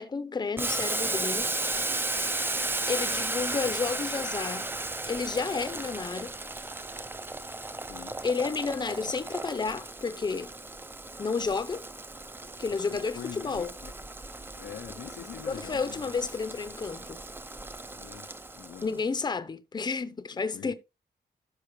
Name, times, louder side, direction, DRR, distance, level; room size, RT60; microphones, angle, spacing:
voice 1, 0.0-1.6 2.9-4.7 5.1-6.4 8.2-10.5 11.2-11.8 12.6-13.8 15.5-17.2 18.8-20.7, left 4 dB, 25° left, 0.7 m, -31 dB
Boiling, 0.6-19.0, right 2 dB, 10° right, 0.4 m, -35 dB
voice 2, 7.9-8.2 12.9-13.9 14.5-16.2 16.5-16.6 17.9-18.3 18.6-19.1 20.3-20.7, left 10 dB, 80° left, 0.6 m, -44 dB
13.0 x 5.6 x 3.1 m
wide cardioid pair, 150°, 17 cm